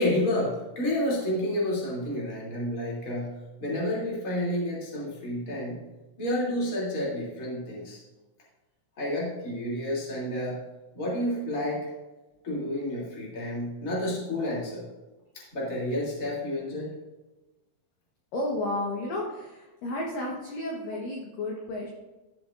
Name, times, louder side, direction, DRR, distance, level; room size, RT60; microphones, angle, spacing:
voice 1, 0.0-3.3 3.6-5.8 6.2-8.0 9.0-10.6 10.9-11.9 12.4-14.9 15.3-16.9, left 1 dB, 25° left, -5 dB, 2.0 m, -30 dB
voice 2, 18.3-21.9, left 1 dB, 70° left, -2 dB, 2.0 m, -32 dB
14.5 x 7.3 x 2.5 m, 1.1 s
omnidirectional pair, 5.8 m